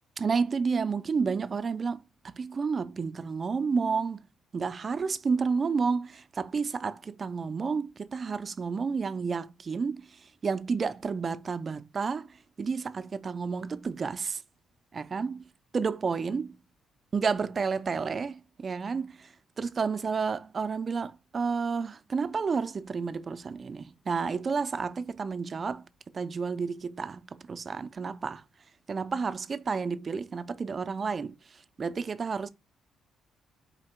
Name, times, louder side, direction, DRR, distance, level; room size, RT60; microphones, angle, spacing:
voice 1, 0.2-2.0 2.2-4.2 4.5-10.1 10.4-12.3 12.6-14.4 14.9-15.4 15.7-16.5 17.1-19.2 19.6-25.9 26.1-28.4 28.9-31.3 31.8-32.5, right 5 dB, 40° right, 0.4 m, -30 dB
4.4 x 2.8 x 4.2 m
cardioid pair, 90°, 0 cm